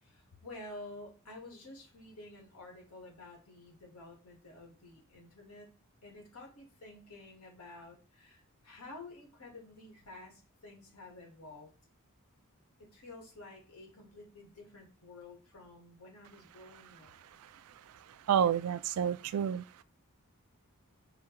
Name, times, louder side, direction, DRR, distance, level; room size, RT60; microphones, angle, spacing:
voice 1, 0.0-11.7 12.8-17.1, left 2 dB, 80° left, 1.8 m, -51 dB
voice 2, 17.3-19.8, right 8 dB, 75° right, 0.3 m, -31 dB
4.8 x 2.3 x 4.5 m
head